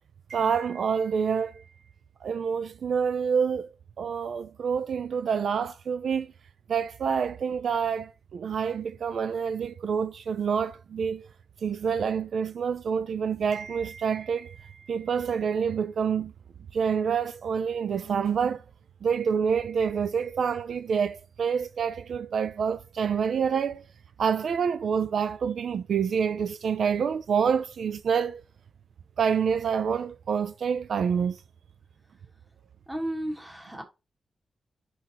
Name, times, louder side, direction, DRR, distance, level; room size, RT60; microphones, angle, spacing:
voice 1, 0.3-1.6 2.2-6.3 6.7-11.3 11.6-16.3 16.7-18.6 19.0-23.8 24.2-28.4 29.2-31.4, right 6 dB, 60° right, 0.4 m, -27 dB
voice 2, 32.9-33.8, right 1 dB, 10° right, 1.6 m, -33 dB
6.1 x 5.5 x 2.9 m
wide cardioid pair, 180°, 0 cm